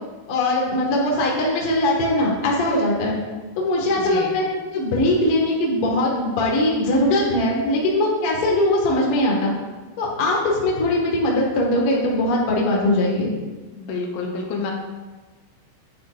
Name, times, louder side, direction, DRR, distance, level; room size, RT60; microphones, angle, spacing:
voice 1, 0.3-3.2 3.5-4.4 4.7-9.5 10.0-13.3, left 1 dB, 60° left, -3 dB, 1.5 m, -21 dB
voice 2, 4.0-4.4 13.8-14.7, left 3 dB, 75° left, 1 dB, 3.0 m, -29 dB
10.5 x 9.9 x 2.6 m, 1.3 s
omnidirectional pair, 5.8 m